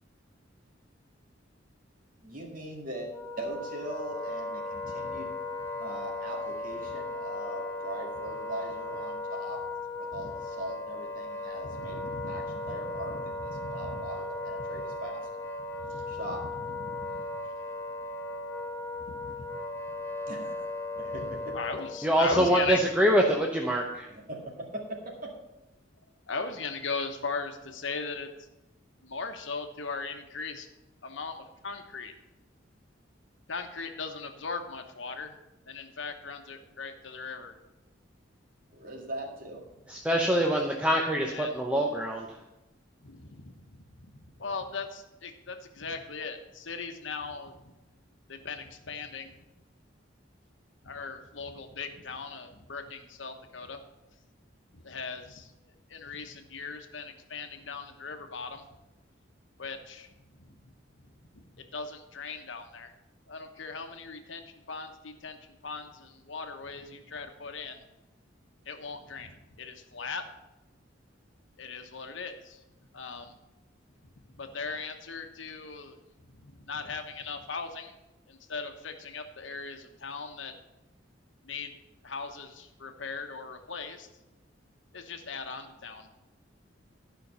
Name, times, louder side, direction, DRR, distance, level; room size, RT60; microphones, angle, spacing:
voice 1, 2.2-3.1 3.4-5.3 5.8-9.6 10.0-13.1 13.4-15.3 16.0-16.4 20.3-20.7 20.9-21.5 24.1-24.4 24.7-24.8 25.2-25.3 38.7-39.6, right 1 dB, 45° right, 0 dB, 2.1 m, -40 dB
Wind instrument woodwind instrument, 3.1-22.2, left 2 dB, 10° left, 1.0 m, -37 dB
voice 2, 4.8-5.2 10.1-10.3 11.6-14.1 14.5-14.9 15.7-17.1 19.1-19.5 21.1-22.8 26.3-28.3 29.0-30.7 31.0-32.1 33.5-35.4 35.7-37.5 41.3-41.5 43.0-47.6 48.3-49.4 50.8-53.8 54.7-55.5 55.9-58.7 59.6-60.1 60.4-60.5 61.5-62.9 63.3-65.4 65.6-67.8 68.6-70.2 71.6-72.6 72.9-73.3 74.3-76.0 76.2-77.9 78.3-80.5 81.4-81.7 82.0-84.1 84.9-86.1, left 4 dB, 75° left, 6 dB, 1.1 m, -39 dB
voice 3, 22.0-24.1 39.9-42.4, equal, 5° right, 0 dB, 0.7 m, -25 dB
12.0 x 5.7 x 5.5 m, 0.98 s
head